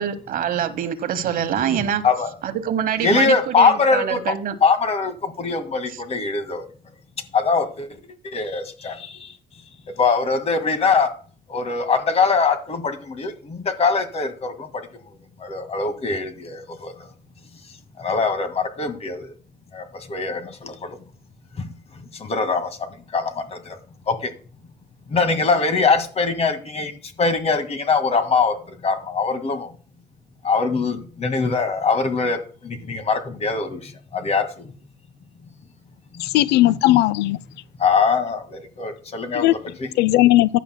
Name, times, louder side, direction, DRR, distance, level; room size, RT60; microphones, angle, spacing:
voice 1, 0.0-2.0 2.4-4.6, right 9 dB, 55° right, 1.1 m, -25 dB
voice 2, 3.0-4.3 4.6-6.7 7.3-7.9 8.3-9.0 10.0-11.1 11.5-14.7 15.4-16.9 18.0-19.3 19.7-19.8 20.1-20.7 22.2-22.7 23.1-23.3 23.7-23.8 24.1-24.3 25.1-26.9 27.2-28.5 28.8-29.7 30.4-32.4 32.6-34.5 36.6-36.8 37.8-39.9, left 4 dB, 40° left, 1.9 m, -22 dB
voice 3, 36.2-37.4 39.4-39.5 40.0-40.6, left 16 dB, 80° left, 0.4 m, -17 dB
15.0 x 10.0 x 2.2 m
cardioid pair, 110°, 17 cm